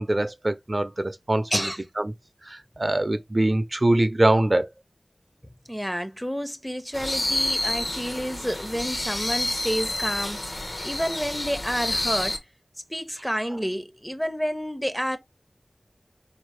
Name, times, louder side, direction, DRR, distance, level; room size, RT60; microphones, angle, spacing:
voice 1, 0.0-1.6 2.5-4.7, right 1 dB, 40° right, 0.5 m, -23 dB
voice 2, 1.5-1.8 5.7-12.4 12.9-15.2, equal, 5° left, 0.6 m, -29 dB
sound 1, 6.9-12.4, left 1 dB, 55° left, 0.8 m, -29 dB
4.1 x 2.6 x 3.2 m
wide cardioid pair, 50°, 0 cm